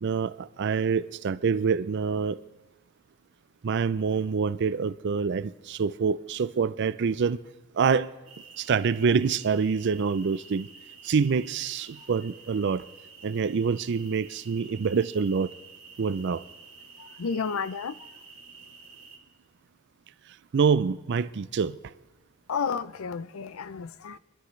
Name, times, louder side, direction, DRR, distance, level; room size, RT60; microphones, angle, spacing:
voice 1, 0.0-2.4 3.6-7.4 7.7-8.1 8.6-10.7 11.0-12.8 13.2-15.5 16.0-16.4 20.5-21.8, right 5 dB, 55° right, 0.4 m, -26 dB
sound 1, 8.3-19.2, right 5 dB, 80° right, 2.8 m, -49 dB
voice 2, 17.0-18.1 22.5-24.2, left 6 dB, 75° left, 0.5 m, -32 dB
25.0 x 11.5 x 3.2 m
head